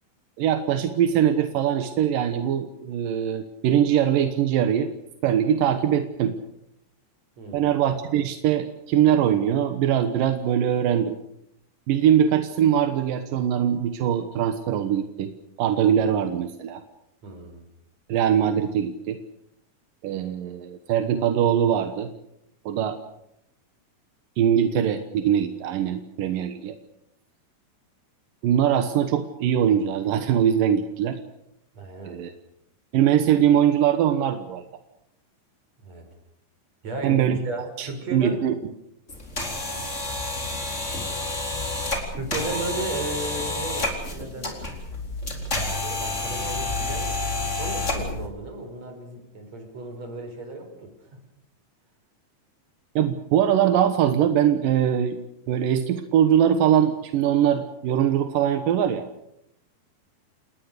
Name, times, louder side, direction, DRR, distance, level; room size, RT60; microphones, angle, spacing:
voice 1, 0.4-4.9 5.2-6.4 7.5-11.2 11.9-15.3 15.6-16.8 18.1-19.2 20.0-22.1 22.7-23.0 24.4-26.8 28.4-31.2 32.1-32.3 32.9-34.6 37.0-37.4 37.8-38.5 53.0-59.0, right 9 dB, 85° right, 8 dB, 2.9 m, -22 dB
voice 2, 7.4-7.7 17.2-17.6 31.7-32.2 35.8-36.0 36.8-38.5 42.1-44.6 45.8-51.2, right 2 dB, 55° right, 6 dB, 5.8 m, -35 dB
sound 1, 39.1-48.3, left 2 dB, 20° left, 4.2 m, -29 dB
28.5 x 20.0 x 6.7 m, 0.78 s
omnidirectional pair, 3.8 m